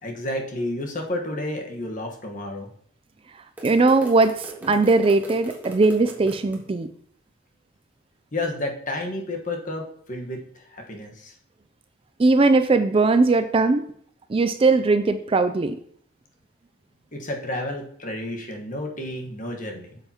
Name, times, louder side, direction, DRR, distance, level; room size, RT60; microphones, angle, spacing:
voice 1, 0.0-2.7 8.3-11.3 17.1-20.0, left 1 dB, 40° left, 2 dB, 1.3 m, -31 dB
sound 1, 3.6-6.6, right 1 dB, 10° right, 1.4 m, -40 dB
voice 2, 3.6-6.9 12.2-13.9 14.3-15.8, right 3 dB, 25° right, 10 dB, 0.3 m, -19 dB
8.4 x 6.7 x 2.9 m, 0.63 s
head